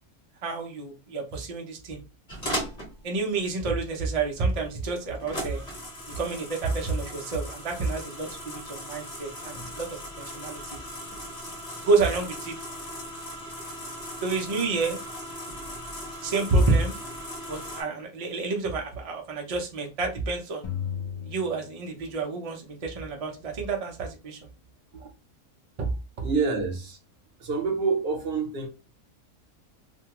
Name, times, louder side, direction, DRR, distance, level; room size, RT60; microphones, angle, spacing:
voice 1, 0.4-2.0 3.0-5.6 6.1-9.9 10.2-10.8 11.9-12.5 14.2-15.0 16.2-16.9 17.5-20.7 21.3-24.4 24.9-25.1 25.8-25.9, right 3 dB, 70° right, 0.3 m, -29 dB
sound 1, 2.3-17.8, equal, 30° left, 1.0 m, -38 dB
sound 2, 20.6-22.4, left 8 dB, 70° left, 0.3 m, -35 dB
voice 2, 26.2-27.0 27.4-28.7, right 4 dB, 55° right, 0.8 m, -27 dB
2.6 x 2.3 x 2.8 m
omnidirectional pair, 1.5 m